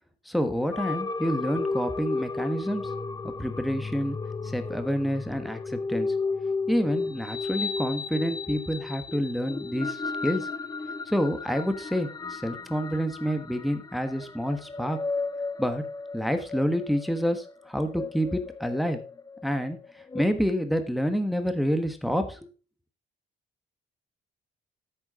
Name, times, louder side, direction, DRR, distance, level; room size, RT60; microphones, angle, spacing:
voice 1, 0.3-2.8 3.2-4.2 4.4-6.1 6.7-10.5 11.1-15.0 15.6-15.8 16.1-19.0 19.4-19.8 20.1-22.4, equal, ahead, 7 dB, 1.3 m, -28 dB
sound 1, 0.7-20.2, left 3 dB, 20° left, 0.7 m, -34 dB
10.5 x 8.1 x 3.7 m, 0.37 s
cardioid pair, 90°, 20 cm